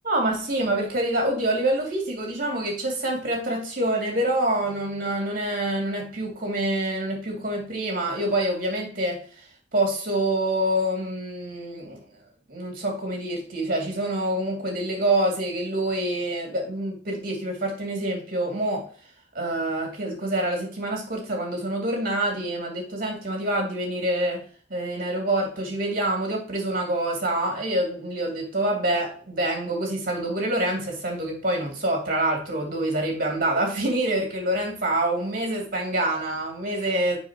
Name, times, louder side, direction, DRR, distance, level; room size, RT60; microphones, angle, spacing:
voice 1, 0.0-9.2 9.7-12.0 12.5-18.9 19.3-24.4 24.7-37.2, right 1 dB, 50° right, 2.3 m, -26 dB
7.0 x 5.5 x 2.9 m
head